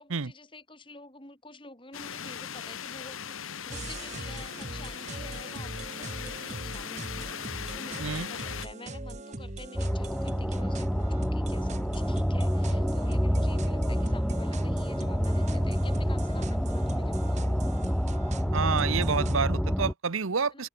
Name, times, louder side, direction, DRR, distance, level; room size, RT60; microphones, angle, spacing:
voice 1, 0.0-17.4 20.5-20.7, left 2 dB, 25° left, 4.5 m, -48 dB
sound 1, 1.9-8.7, left 7 dB, 80° left, 1.4 m, -39 dB
sound 2, 3.7-19.4, right 2 dB, 35° right, 1.5 m, -40 dB
sound 3, 9.8-19.9, equal, ahead, 0.7 m, -28 dB
voice 2, 18.5-20.7, right 5 dB, 80° right, 0.9 m, -28 dB
open air
head